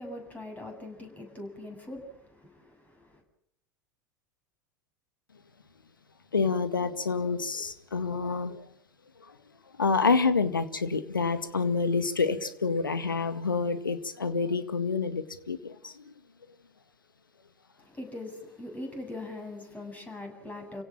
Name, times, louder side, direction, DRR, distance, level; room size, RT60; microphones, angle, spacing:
voice 1, 0.0-3.2 17.8-20.8, left 2 dB, 15° left, 7.9 m, -41 dB
voice 2, 6.3-8.7 9.2-9.4 9.8-16.1, left 4 dB, 80° left, 1.9 m, -28 dB
29.5 x 17.0 x 7.6 m
figure-of-eight pair, 80°, 11 cm